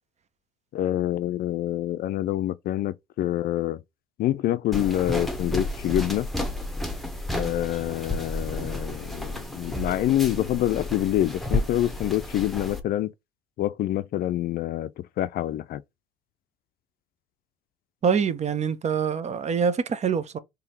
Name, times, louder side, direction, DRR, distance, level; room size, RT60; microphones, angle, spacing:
voice 1, 0.7-3.8 4.2-6.3 7.3-13.1 13.6-15.8, left 13 dB, 55° left, 0.4 m, -26 dB
sound 1, 4.7-12.8, left 1 dB, ahead, 0.9 m, -31 dB
voice 2, 18.0-20.4, right 6 dB, 40° right, 0.7 m, -25 dB
3.8 x 3.3 x 2.9 m
hypercardioid pair, 70°, 18 cm